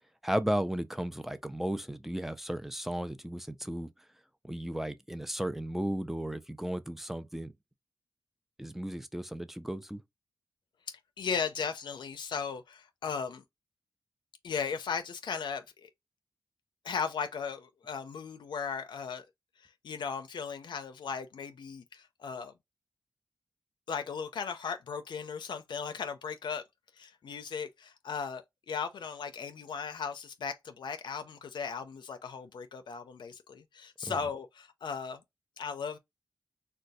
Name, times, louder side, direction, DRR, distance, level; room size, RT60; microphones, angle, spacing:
voice 1, 0.2-3.9 4.4-7.5 8.6-10.0 34.0-34.1, right 1 dB, 5° right, 0.4 m, -34 dB
voice 2, 11.2-13.4 14.4-15.9 16.8-19.2 19.6-22.5 23.9-26.6 27.0-35.2 35.6-36.0, left 6 dB, 80° left, 0.4 m, -37 dB
2.5 x 2.3 x 4.0 m
cardioid pair, 75°, 8 cm